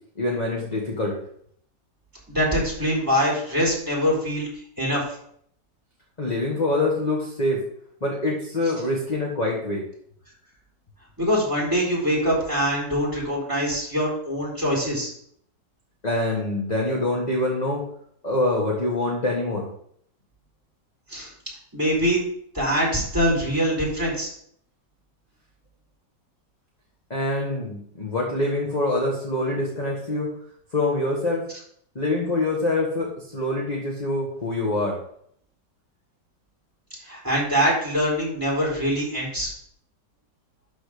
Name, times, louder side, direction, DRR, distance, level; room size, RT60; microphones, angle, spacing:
voice 1, 0.1-1.2 6.2-7.6 8.0-9.8 16.0-17.8 18.2-19.7 27.1-30.3 30.7-31.4 31.9-35.0, left 2 dB, 25° left, -3 dB, 1.7 m, -25 dB
voice 2, 2.3-4.5 4.8-5.0 11.2-15.1 21.1-21.3 21.7-22.2 22.5-24.3 37.0-39.5, equal, 10° right, -5 dB, 4.1 m, -23 dB
12.5 x 4.5 x 5.1 m, 0.66 s
omnidirectional pair, 1.9 m